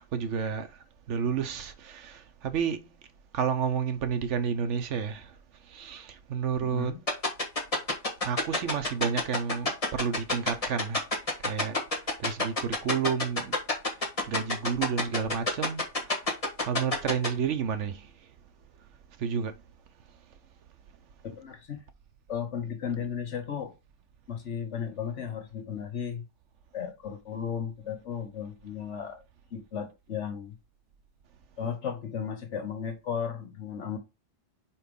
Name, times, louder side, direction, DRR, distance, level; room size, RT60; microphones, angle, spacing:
voice 1, 0.1-0.7 1.1-2.9 3.3-5.3 5.7-6.9 8.2-11.0 11.4-11.8 12.2-13.5 14.3-15.8 16.1-16.2 16.6-18.1 19.2-19.5, right 7 dB, 75° right, 1.1 m, -30 dB
voice 2, 6.7-7.0 21.2-21.9 22.3-23.7 24.3-26.3 26.7-29.2 29.5-30.6 31.6-34.0, left 7 dB, 70° left, 1.5 m, -35 dB
sound 1, 7.1-17.3, left 2 dB, 30° left, 1.4 m, -26 dB
4.6 x 4.3 x 5.2 m
omnidirectional pair, 1.3 m